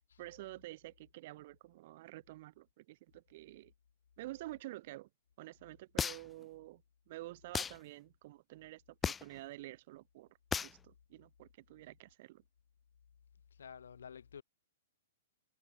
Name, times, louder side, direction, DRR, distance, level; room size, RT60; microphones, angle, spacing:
voice 1, 0.2-3.7 4.2-5.1 5.4-6.8 7.1-12.4, right 18 dB, 50° right, 2.4 m, -49 dB
sound 1, 6.0-6.4 7.5-7.8 9.0-9.4 10.5-10.8, left 6 dB, 15° left, 0.5 m, -35 dB
voice 2, 13.6-14.4, left 7 dB, 85° left, 2.2 m, -50 dB
hypercardioid pair, 135°, 0 cm